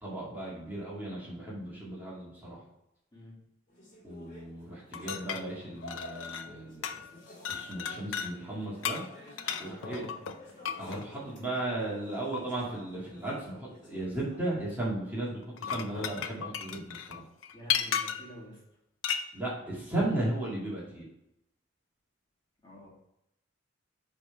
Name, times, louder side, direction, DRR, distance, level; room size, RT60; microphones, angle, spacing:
voice 1, 0.0-2.6 4.0-7.0 7.5-9.0 9.6-10.1 10.8-17.2 19.3-21.1, right 1 dB, 10° right, -7 dB, 2.0 m, -35 dB
sound 1, 3.7-14.5, left 1 dB, 40° left, 2.0 m, -51 dB
sound 2, 4.9-6.6 6.8-7.1 7.4-8.3 8.8-11.1 12.3-12.4 15.4-18.4 19.0-19.3, left 8 dB, 90° left, 0.5 m, -35 dB
voice 2, 9.8-10.1 17.5-18.6 22.6-22.9, left 1 dB, 25° left, -6 dB, 2.3 m, -47 dB
7.9 x 3.6 x 4.6 m, 0.84 s
head